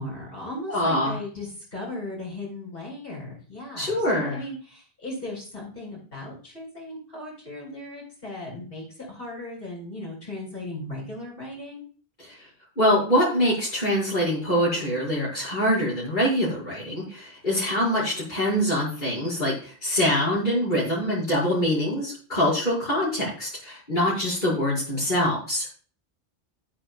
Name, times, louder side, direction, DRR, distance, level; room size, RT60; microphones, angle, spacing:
voice 1, 0.0-11.9, left 1 dB, 65° left, -5 dB, 6.6 m, -37 dB
voice 2, 0.7-1.1 3.8-4.4 12.2-12.4 12.8-25.7, equal, 50° left, -8 dB, 6.1 m, -24 dB
15.0 x 8.9 x 2.4 m, 0.40 s
omnidirectional pair, 1.0 m